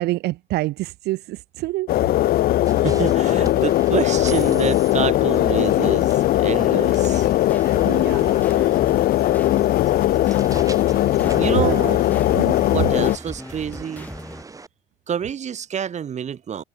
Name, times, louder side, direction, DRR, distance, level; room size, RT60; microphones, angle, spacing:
voice 1, 0.0-1.9 7.5-8.8 11.4-11.8 12.4-12.6, right 18 dB, 80° right, 0.6 m, -27 dB
sound 1, 1.9-13.2, left 14 dB, 65° left, 0.6 m, -19 dB
sound 2, 2.7-14.7, right 4 dB, 20° right, 1.3 m, -40 dB
voice 2, 2.8-7.3 11.3-12.0 12.7-14.1 15.1-16.6, right 8 dB, 45° right, 2.2 m, -27 dB
sound 3, 7.0-14.4, left 2 dB, 10° left, 6.9 m, -39 dB
cardioid pair, 110°, 17 cm